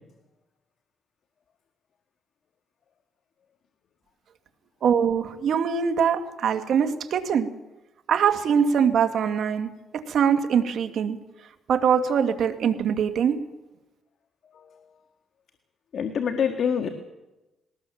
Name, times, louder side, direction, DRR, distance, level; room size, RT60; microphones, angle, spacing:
voice 1, 4.8-7.5 8.1-11.2 11.7-13.4, right 7 dB, 65° right, 8 dB, 2.0 m, -23 dB
voice 2, 15.9-16.9, left 7 dB, 60° left, 6 dB, 1.8 m, -25 dB
21.5 x 19.0 x 7.2 m, 1.0 s
cardioid pair, 90°, 0 cm